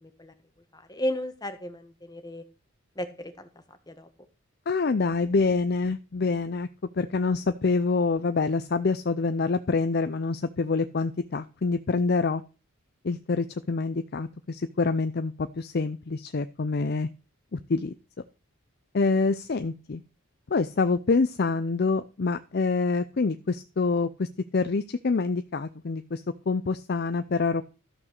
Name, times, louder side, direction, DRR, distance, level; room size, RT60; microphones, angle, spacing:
voice 1, 0.0-0.3 0.7-2.4 3.0-3.5 3.9-4.1, equal, 20° left, 8 dB, 1.4 m, -34 dB
voice 2, 4.7-6.7 6.9-12.4 13.0-17.1 17.5-17.9 18.9-20.0 20.5-27.6, left 4 dB, 50° left, 11 dB, 0.5 m, -26 dB
13.0 x 5.8 x 6.5 m, 0.33 s
head